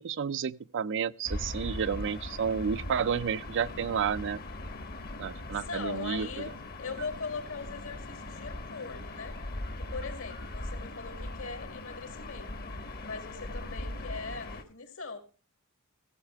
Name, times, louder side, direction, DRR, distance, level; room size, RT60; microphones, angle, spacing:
voice 1, 0.0-4.4 5.2-6.5, right 7 dB, 55° right, 0.4 m, -31 dB
Gull seagull / Ocean, 1.2-14.6, left 2 dB, 45° left, 1.1 m, -40 dB
voice 2, 5.5-6.5 6.8-9.4 9.8-12.5 13.0-15.2, left 4 dB, 70° left, 2.0 m, -40 dB
15.0 x 7.5 x 4.6 m
head